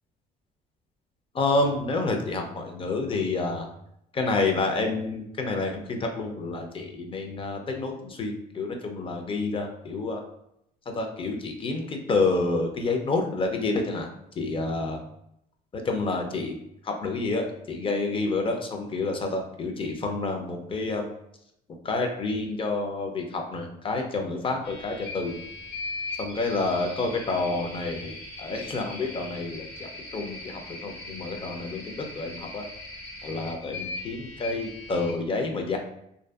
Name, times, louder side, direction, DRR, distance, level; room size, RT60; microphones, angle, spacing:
voice 1, 1.3-3.7 4.1-10.2 10.9-14.1 14.4-15.0 15.7-16.6 16.8-21.1 21.8-25.4 26.2-32.7 33.2-35.8, left 3 dB, 30° left, 3 dB, 0.5 m, -29 dB
sound 1, 24.6-35.1, left 2 dB, 75° left, 1.4 m, -39 dB
2.5 x 2.5 x 2.3 m, 0.78 s
cardioid pair, 110°, 17 cm